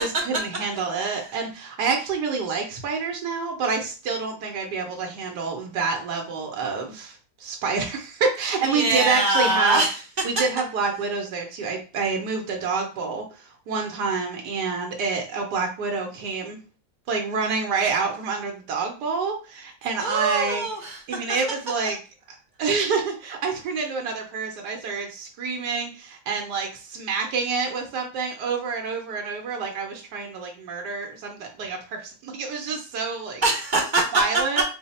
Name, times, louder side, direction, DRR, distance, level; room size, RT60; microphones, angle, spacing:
voice 1, 0.0-9.8 10.2-16.6 17.1-20.7 21.1-22.0 22.6-33.4 34.1-34.6, right 4 dB, 85° right, 2 dB, 1.3 m, -27 dB
voice 2, 8.6-10.0 20.0-21.2 33.4-34.2 34.6-34.7, right 2 dB, 60° right, 1 dB, 0.5 m, -23 dB
4.0 x 2.0 x 4.0 m, 0.35 s
omnidirectional pair, 1.7 m